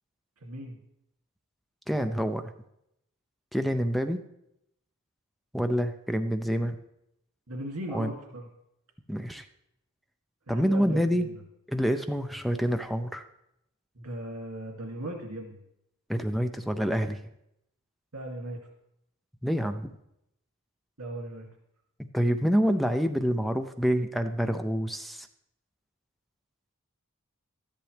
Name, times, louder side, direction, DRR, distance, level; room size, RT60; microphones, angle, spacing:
voice 1, 0.4-0.8 7.5-8.5 10.5-11.3 14.0-15.6 18.1-18.6 21.0-21.5, right 1 dB, 80° right, 1 dB, 2.5 m, -37 dB
voice 2, 1.9-2.5 3.5-4.2 5.5-6.8 7.9-8.1 9.1-9.5 10.5-11.3 11.7-13.2 16.1-17.2 19.4-19.9 22.1-25.3, equal, ahead, 8 dB, 0.4 m, -27 dB
13.0 x 10.5 x 3.3 m, 0.81 s
head